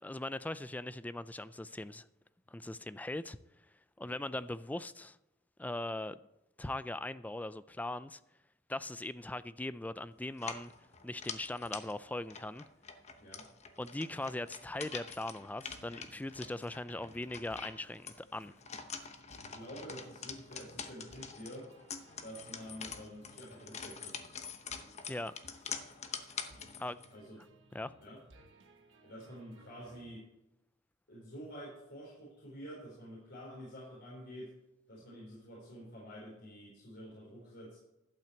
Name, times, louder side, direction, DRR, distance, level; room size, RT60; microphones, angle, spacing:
voice 1, 0.0-2.1 2.5-3.4 4.0-5.2 5.6-6.2 6.6-8.2 8.7-10.7 11.0-12.6 13.8-18.5 25.1-25.4 26.8-27.0 27.7-27.9, left 2 dB, 10° left, 0.3 m, -40 dB
sound 1, 10.3-27.1, left 6 dB, 35° left, 0.9 m, -46 dB
sound 2, 15.7-30.1, right 1 dB, 75° right, 1.1 m, -61 dB
voice 2, 19.3-21.7 22.2-24.3 27.1-27.4 28.0-28.2 29.0-30.3 31.1-34.5 34.9-37.8, equal, 60° left, 4.2 m, -48 dB
12.0 x 5.8 x 7.9 m
head